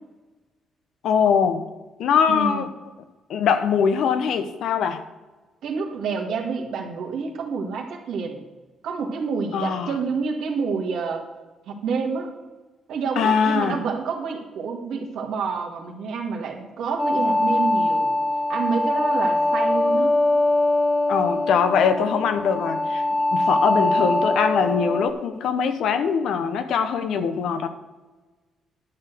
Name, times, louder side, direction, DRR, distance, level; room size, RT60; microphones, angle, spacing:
voice 1, 1.0-1.6 2.0-2.7 3.3-5.0 9.5-9.9 13.2-13.8 21.1-23.0 23.3-27.7, left 6 dB, 75° left, 9 dB, 0.9 m, -22 dB
voice 2, 2.3-2.6 5.6-8.4 8.8-11.2 11.7-12.3 12.9-18.1 18.5-20.2, right 5 dB, 80° right, 2 dB, 1.8 m, -28 dB
sound 1, 17.0-25.1, left 2 dB, 15° left, 1.0 m, -22 dB
11.0 x 4.9 x 7.8 m, 1.2 s
cardioid pair, 90°, 0 cm